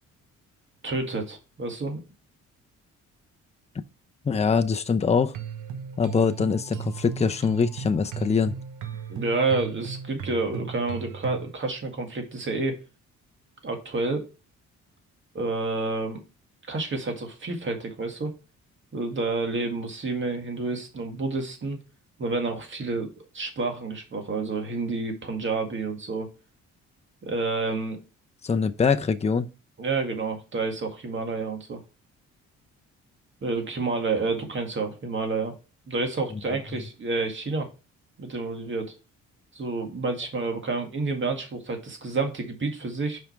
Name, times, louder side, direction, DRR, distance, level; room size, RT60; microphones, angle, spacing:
voice 1, 0.8-2.0 9.1-12.8 13.6-14.3 15.3-16.2 16.7-18.3 18.9-21.8 22.2-26.3 27.2-28.0 29.8-31.8 33.4-35.5 35.9-37.7 38.2-38.9 39.5-43.2, right 3 dB, 40° right, 2.0 m, -29 dB
voice 2, 4.2-5.3 6.0-8.6 28.4-29.5, left 5 dB, 20° left, 0.7 m, -23 dB
sound 1, 5.1-11.5, right 7 dB, 85° right, 1.1 m, -37 dB
5.7 x 5.2 x 4.6 m
cardioid pair, 90°, 30 cm